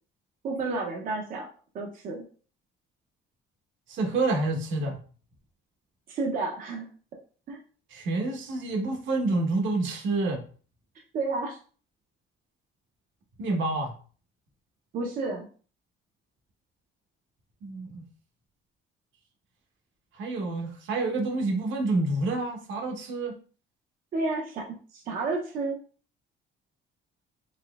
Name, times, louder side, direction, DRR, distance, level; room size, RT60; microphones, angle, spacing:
voice 1, 0.4-1.5 1.7-2.2 6.1-6.9 7.5-7.6 11.1-11.6 14.9-15.5 24.1-25.8, right 3 dB, 40° right, 0.6 m, -31 dB
voice 2, 3.9-5.0 7.9-10.4 13.4-13.9 17.6-18.0 20.1-23.3, right 2 dB, 70° right, 1.1 m, -28 dB
4.1 x 3.0 x 2.3 m
cardioid pair, 165°, 21 cm